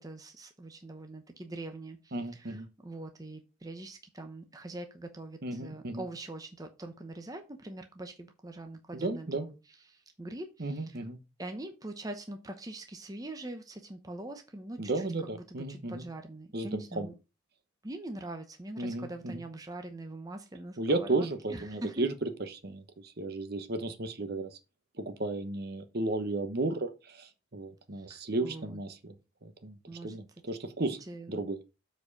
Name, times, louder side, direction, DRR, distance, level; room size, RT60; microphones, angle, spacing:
voice 1, 0.0-9.5 9.9-11.0 11.4-17.1 17.8-22.1 27.9-28.8 29.9-30.2 31.1-31.4, right 2 dB, 20° right, 0.8 m, -43 dB
voice 2, 2.1-2.7 5.4-6.0 8.9-9.5 10.6-11.2 14.8-16.0 16.5-17.1 18.8-19.4 20.8-24.6 25.0-29.1 29.4-31.0 31.3-31.6, right 2 dB, 50° right, 1.1 m, -34 dB
7.5 x 4.5 x 5.3 m
head